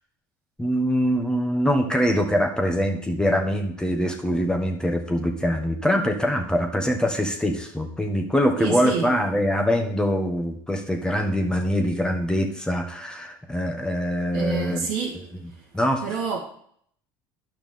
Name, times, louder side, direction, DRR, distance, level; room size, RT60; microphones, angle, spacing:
voice 1, 0.6-14.9 15.1-15.2 15.7-16.0, equal, 5° left, 3 dB, 1.5 m, -23 dB
voice 2, 8.6-9.1 14.3-15.2 16.0-16.4, right 5 dB, 70° right, -2 dB, 1.5 m, -28 dB
10.5 x 5.9 x 3.7 m, 0.63 s
hypercardioid pair, 80°, 12 cm